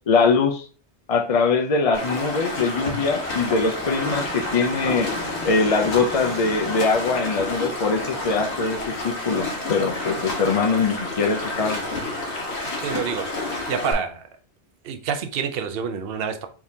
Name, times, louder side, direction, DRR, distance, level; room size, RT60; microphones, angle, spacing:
voice 1, 0.1-0.7 1.1-5.1 5.4-11.8, left 4 dB, 50° left, 2 dB, 0.4 m, -22 dB
Stream, 1.9-13.9, left 2 dB, 70° left, 1.5 m, -29 dB
Fixed-wing aircraft airplane, 3.1-12.1, right 1 dB, 40° right, 1.3 m, -42 dB
voice 2, 12.8-13.3 13.7-14.3 14.8-16.5, right 7 dB, 65° right, 7 dB, 0.8 m, -27 dB
4.7 x 3.6 x 2.7 m, 0.39 s
omnidirectional pair, 1.1 m